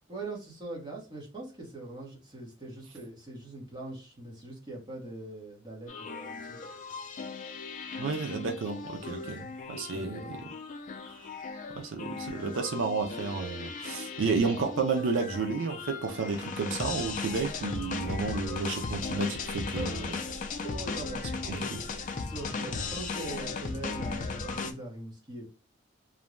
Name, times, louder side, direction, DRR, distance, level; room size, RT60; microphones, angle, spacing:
voice 1, 0.1-6.6 9.9-10.4 19.7-21.9 22.1-25.5, right 2 dB, 25° right, 0.9 m, -42 dB
sound 1, 5.9-24.7, left 4 dB, 40° left, 0.3 m, -37 dB
voice 2, 8.0-10.5 11.8-20.2 21.5-21.8, right 4 dB, 80° right, 0.4 m, -32 dB
2.5 x 2.1 x 3.0 m
head